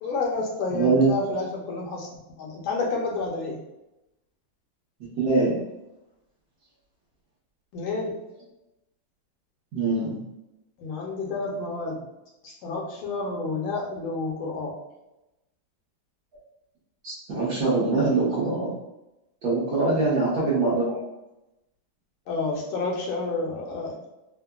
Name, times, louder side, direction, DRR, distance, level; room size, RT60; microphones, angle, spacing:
voice 1, 0.0-2.1 2.4-3.6 7.7-8.2 10.8-12.1 12.4-14.7 19.9-20.2 22.3-24.0, left 3 dB, 80° left, -2 dB, 1.4 m, -30 dB
voice 2, 0.7-1.1 5.2-5.5 9.7-10.2 17.0-18.7 19.4-21.0, right 3 dB, 60° right, -8 dB, 1.1 m, -23 dB
3.6 x 2.0 x 2.3 m, 0.95 s
omnidirectional pair, 2.2 m